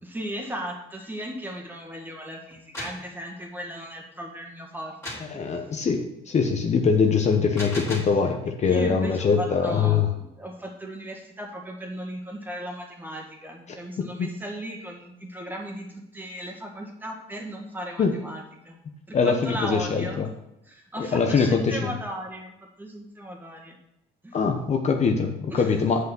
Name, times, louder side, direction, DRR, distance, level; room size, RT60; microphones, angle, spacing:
voice 1, 0.0-5.7 8.2-8.3 8.7-18.8 19.1-20.2 20.6-23.8 24.2-24.4 25.5-25.8, equal, 10° right, 1 dB, 1.9 m, -36 dB
sound 1, 2.5-3.1 5.0-5.3 7.3-8.2, left 1 dB, 15° left, 3.0 m, -36 dB
voice 2, 5.3-10.1 14.0-14.3 18.0-18.1 19.1-20.3 21.0-21.9 24.3-26.0, left 5 dB, 40° left, 4 dB, 0.9 m, -23 dB
7.8 x 5.6 x 6.0 m, 0.86 s
cardioid pair, 110°, 17 cm